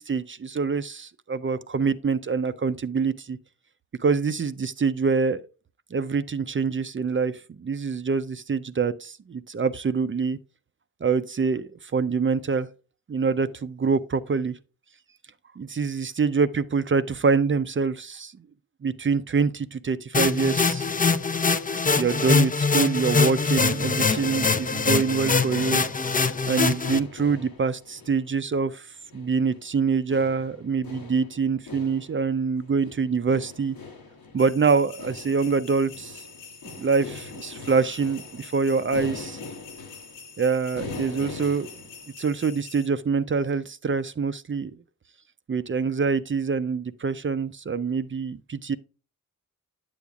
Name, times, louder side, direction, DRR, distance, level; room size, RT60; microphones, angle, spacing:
voice 1, 0.0-3.4 4.0-5.4 5.9-10.4 11.0-12.7 13.1-14.6 15.6-18.3 18.8-20.9 21.9-25.8 26.5-28.9 29.1-33.8 34.3-36.2 36.8-39.4 40.4-41.7 42.2-44.7 45.5-48.8, right 5 dB, 35° right, 0.5 m, -25 dB
sound 1, 20.1-27.0, left 4 dB, 25° left, 0.5 m, -23 dB
sound 2, 23.1-42.1, left 4 dB, 80° left, 1.3 m, -42 dB
sound 3, 34.4-42.9, left 5 dB, 60° left, 1.0 m, -46 dB
9.0 x 6.8 x 2.4 m
cardioid pair, 50°, 35 cm